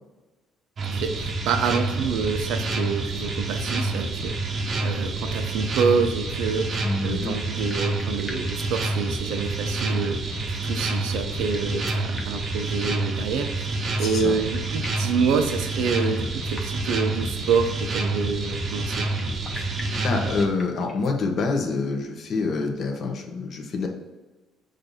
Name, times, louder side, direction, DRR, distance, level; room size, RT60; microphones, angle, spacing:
sound 1, 0.8-20.5, right 2 dB, 35° right, 0.8 m, -28 dB
voice 1, 0.9-4.4 4.8-10.2 10.6-19.1, right 6 dB, 85° right, 7 dB, 0.6 m, -27 dB
voice 2, 6.8-7.4 14.0-14.4 19.6-23.9, left 4 dB, 40° left, 3 dB, 0.9 m, -27 dB
sound 2, 7.2-9.7 11.3-12.6 13.9-14.0 14.3-15.2 16.1-17.0 19.0-21.1, left 2 dB, 15° left, 0.9 m, -44 dB
6.5 x 2.6 x 5.5 m, 1.2 s
cardioid pair, 145°, 0 cm